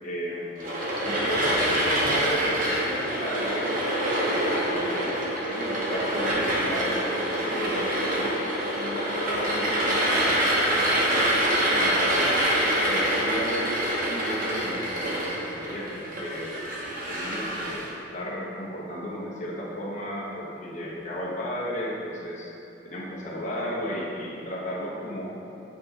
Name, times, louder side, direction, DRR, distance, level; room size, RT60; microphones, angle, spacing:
voice 1, 0.0-0.7 1.0-3.7 4.2-8.4 8.7-12.2 12.8-16.5 17.1-17.9 18.1-22.5 22.8-25.3, equal, 40° left, -5 dB, 1.2 m, -34 dB
sound 1, 0.6-17.9, right 1 dB, 50° right, 1.1 m, -26 dB
8.7 x 4.4 x 3.3 m, 2.9 s
head